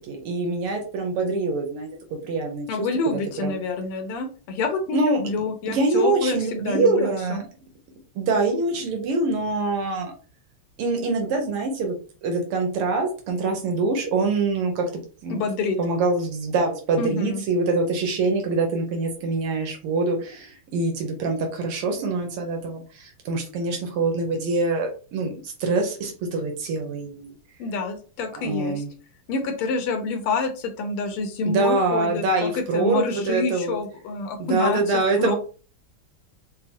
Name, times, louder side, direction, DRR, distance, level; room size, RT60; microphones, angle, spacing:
voice 1, 0.1-1.9 2.2-2.7 3.1-3.6 4.9-5.2 5.7-7.5 8.2-10.1 10.8-12.0 12.2-14.9 15.2-15.4 15.8-27.4 28.4-28.9 31.4-33.8 34.4-35.3, right 3 dB, 85° right, 2 dB, 1.8 m, -24 dB
voice 2, 2.7-7.4 15.3-15.8 17.0-17.4 27.6-28.8 29.3-34.8 35.2-35.3, left 3 dB, 85° left, 5 dB, 1.7 m, -27 dB
5.9 x 2.1 x 2.9 m, 0.38 s
omnidirectional pair, 2.4 m